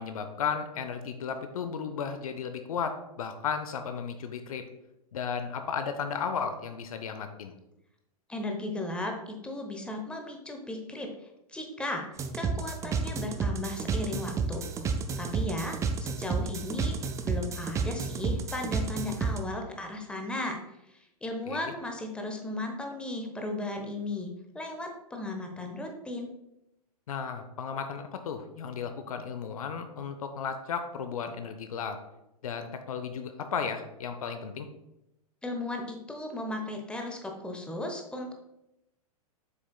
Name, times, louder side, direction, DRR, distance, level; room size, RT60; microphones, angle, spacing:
voice 1, 0.0-4.6 5.1-7.6 21.5-21.6 27.1-32.0 32.4-34.7, left 6 dB, 65° left, 8 dB, 0.8 m, -34 dB
voice 2, 8.3-11.1 11.5-12.1 12.3-14.7 15.2-20.6 21.2-26.3 35.4-38.3, left 1 dB, 5° left, 3 dB, 1.0 m, -36 dB
sound 1, 12.2-19.4, right 5 dB, 15° right, 0.5 m, -31 dB
7.9 x 6.1 x 2.3 m, 0.87 s
figure-of-eight pair, 105°, 20 cm